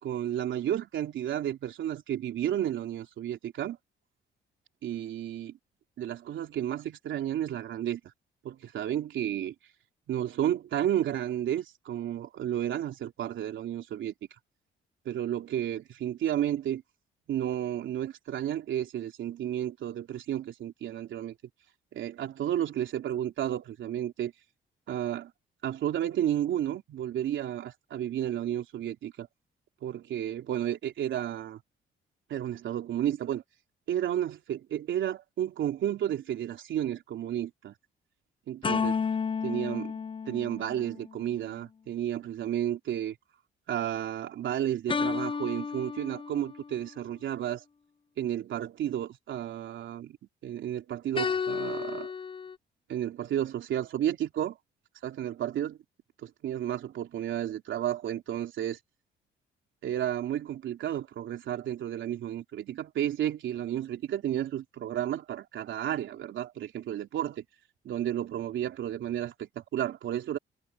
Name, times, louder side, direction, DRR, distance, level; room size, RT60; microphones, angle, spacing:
voice 1, 0.0-3.8 4.8-5.6 6.0-8.1 8.4-9.5 10.1-14.1 15.0-16.8 17.3-21.3 21.9-24.3 24.9-25.3 25.6-29.3 29.8-31.6 32.3-33.4 33.9-37.7 38.5-39.0 39.4-40.0 40.3-43.1 43.7-47.6 48.2-50.2 50.4-52.1 52.9-54.5 55.0-55.8 56.2-58.8 59.8-67.4 67.8-70.4, right 11 dB, 75° right, 3.4 m, -32 dB
sound 1, 38.6-41.2 44.9-46.7 51.2-52.6, left 5 dB, 25° left, 0.6 m, -32 dB
cardioid pair, 90°, 20 cm